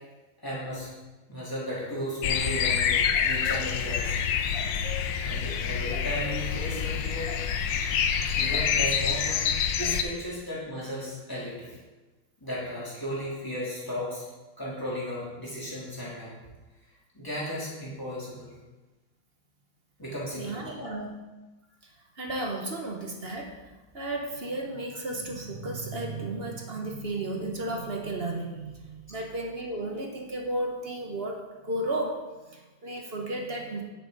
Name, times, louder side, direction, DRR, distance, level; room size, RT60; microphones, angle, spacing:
voice 1, 0.4-0.9 1.3-4.3 4.8-4.9 5.2-7.3 8.3-9.5 9.8-11.8 12.4-14.3 14.6-16.3 17.1-18.5 20.0-20.9, equal, 10° left, -7 dB, 3.1 m, -35 dB
sound 1, 2.2-10.0, left 7 dB, 75° left, 1.4 m, -27 dB
voice 2, 20.4-21.2 21.8-23.5 23.9-33.8, right 2 dB, 40° right, 1 dB, 1.1 m, -34 dB
10.0 x 8.4 x 4.0 m, 1.2 s
omnidirectional pair, 2.1 m